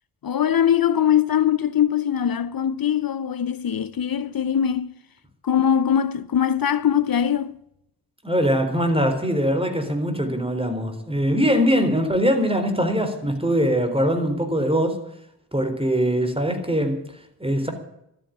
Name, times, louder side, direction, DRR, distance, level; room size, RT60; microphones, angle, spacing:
voice 1, 0.2-4.9 5.4-7.6, left 9 dB, 60° left, 0.6 m, -21 dB
voice 2, 8.2-15.0 15.5-17.7, equal, 15° right, 3.9 m, -22 dB
12.5 x 9.1 x 9.9 m
cardioid pair, 45°, 39 cm